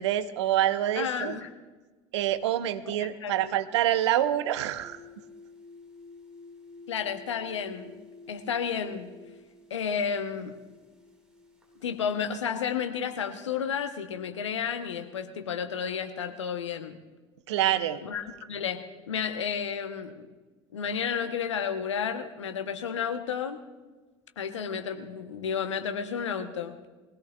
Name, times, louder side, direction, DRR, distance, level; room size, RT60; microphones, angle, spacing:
voice 1, 0.0-1.4 2.1-5.0 17.5-18.0, right 12 dB, 70° right, 13 dB, 0.7 m, -26 dB
voice 2, 1.0-1.5 3.0-3.5 6.9-7.9 8.3-9.1 9.7-10.5 11.8-17.0 18.0-20.3 20.7-23.6 24.4-26.8, left 7 dB, 80° left, 7 dB, 1.0 m, -32 dB
sound 1, 4.8-12.3, left 3 dB, 5° right, 4.6 m, -51 dB
22.5 x 16.5 x 2.4 m, 1.3 s
figure-of-eight pair, 65°, 15 cm